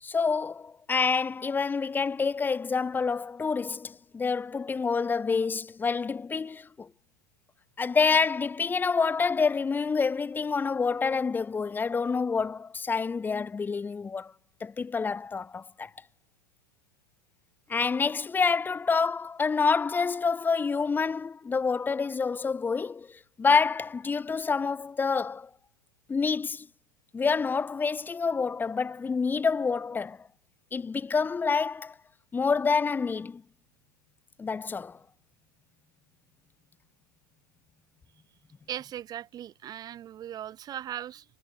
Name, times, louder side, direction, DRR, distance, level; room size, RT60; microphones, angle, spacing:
voice 1, 0.0-6.9 7.8-14.3 14.6-15.9 17.7-25.5 26.1-26.7 27.1-30.2 30.7-31.9 32.3-33.4 34.4-35.0, left 5 dB, 15° left, 1.8 m, -27 dB
voice 2, 38.7-41.3, right 11 dB, 35° right, 5.3 m, -38 dB
hypercardioid pair, 110°, 12 cm